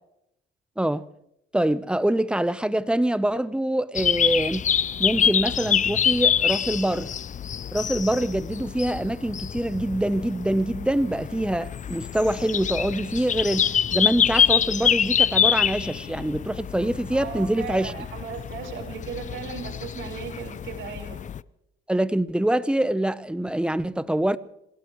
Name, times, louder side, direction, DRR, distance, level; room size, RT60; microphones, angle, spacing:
voice 1, 1.5-4.7 5.0-7.1 7.7-17.9 21.9-24.4, right 1 dB, 5° right, 0.8 m, -25 dB
sound 1, 3.9-21.4, left 8 dB, 40° left, 0.5 m, -26 dB
voice 2, 17.1-21.2, right 7 dB, 75° right, 4.3 m, -36 dB
27.0 x 17.0 x 3.1 m
cardioid pair, 90°, 20 cm